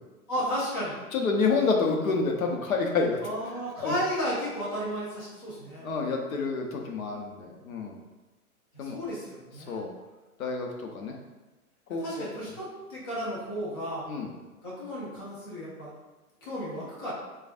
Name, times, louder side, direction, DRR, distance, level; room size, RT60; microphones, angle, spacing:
voice 1, 0.3-1.0 3.2-5.8 8.7-9.8 12.0-14.1 14.6-15.9 16.4-17.1, equal, 20° left, -8 dB, 0.3 m, -33 dB
voice 2, 1.1-3.2 3.7-3.9 5.8-8.0 8.8-9.0 9.7-9.9 10.4-10.7 10.9-11.1 11.9-12.3 14.1-14.3, left 4 dB, 65° left, 1 dB, 0.8 m, -28 dB
4.8 x 2.3 x 2.5 m, 1.1 s
figure-of-eight pair, 120°, 45 cm